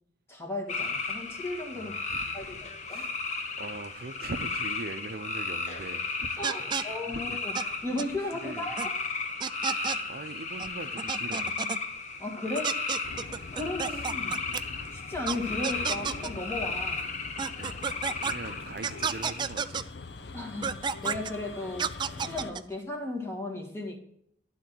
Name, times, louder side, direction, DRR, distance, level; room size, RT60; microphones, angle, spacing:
voice 1, 0.3-2.0 2.3-3.1 6.4-7.5 7.8-9.0 12.2-12.7 13.5-14.5 14.9-17.0 20.3-21.9 22.2-24.0, left 2 dB, 15° left, 1.7 m, -35 dB
sound 1, 0.7-19.6, left 4 dB, 40° left, 1.0 m, -35 dB
voice 2, 1.7-7.4 8.4-8.7 9.7-11.6 13.9-14.0 17.5-19.9, right 3 dB, 55° right, 0.7 m, -42 dB
sound 2, 6.4-6.8 7.5-7.6 8.0-8.1 8.8-8.9 9.4-10.0 10.6-10.7 11.0-11.8 12.5-14.6 15.3-15.4 15.6-16.3 17.4-18.3 18.8-19.8 20.6-21.3 21.8-22.6, right 6 dB, 25° right, 0.3 m, -31 dB
sound 3, 13.0-22.5, left 3 dB, 70° left, 0.7 m, -43 dB
12.0 x 4.0 x 6.1 m
head